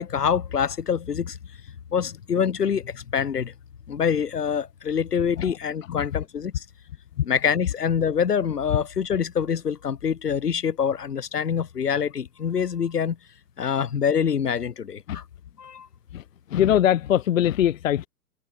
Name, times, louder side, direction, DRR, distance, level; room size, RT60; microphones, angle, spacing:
voice 1, 0.0-1.4 1.9-3.5 3.9-6.6 7.2-13.2 13.6-15.2 15.6-15.9, left 7 dB, 75° left, 1.0 m, -25 dB
voice 2, 16.5-18.1, left 11 dB, 60° left, 0.6 m, -22 dB
figure-of-eight pair, 110°, 47 cm